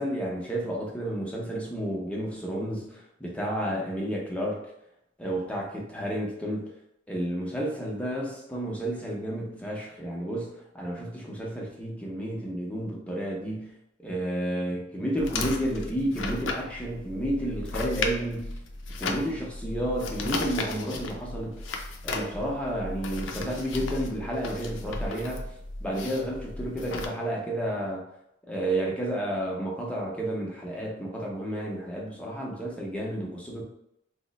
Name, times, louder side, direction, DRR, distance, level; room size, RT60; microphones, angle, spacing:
voice 1, 0.0-4.6 5.2-6.7 7.1-13.7 14.0-18.6 19.0-21.6 22.0-25.5 25.8-28.0 28.5-33.6, right 1 dB, 5° left, -3 dB, 0.6 m, -31 dB
sound 1, 15.2-27.1, left 3 dB, 90° left, 0.5 m, -35 dB
2.9 x 2.0 x 4.0 m, 0.79 s
head